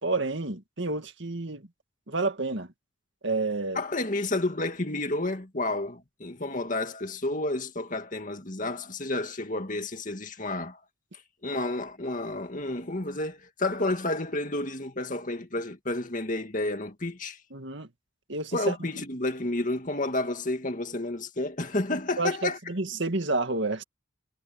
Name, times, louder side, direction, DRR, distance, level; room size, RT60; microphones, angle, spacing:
voice 1, 0.0-1.7 2.1-2.7 3.2-3.8 17.5-17.9 18.3-18.8 22.2-23.8, right 3 dB, 60° right, 2.1 m, -29 dB
voice 2, 3.7-10.8 11.4-17.4 18.5-22.6, left 2 dB, 40° left, 2.2 m, -30 dB
head